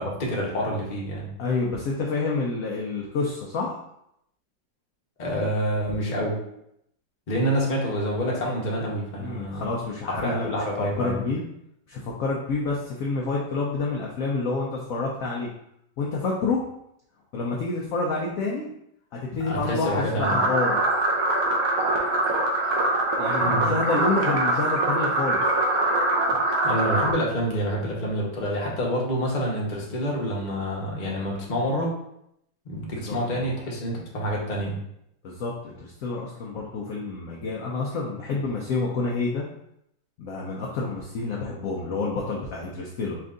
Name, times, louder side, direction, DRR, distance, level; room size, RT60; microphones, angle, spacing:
voice 1, 0.0-1.3 5.2-6.3 7.3-9.7 10.1-11.2 19.4-20.4 23.4-23.7 26.6-31.9 32.6-34.8, equal, 35° left, -3 dB, 0.7 m, -27 dB
voice 2, 1.4-3.8 9.2-10.4 11.0-11.4 11.9-15.5 16.0-16.6 17.3-18.7 19.1-20.8 23.2-25.4 32.9-33.5 35.2-39.5 40.2-43.2, left 3 dB, 70° left, -2 dB, 0.8 m, -28 dB
sound 1, 20.2-27.1, right 2 dB, 60° right, 1.1 m, -23 dB
4.4 x 2.6 x 3.7 m, 0.77 s
omnidirectional pair, 2.0 m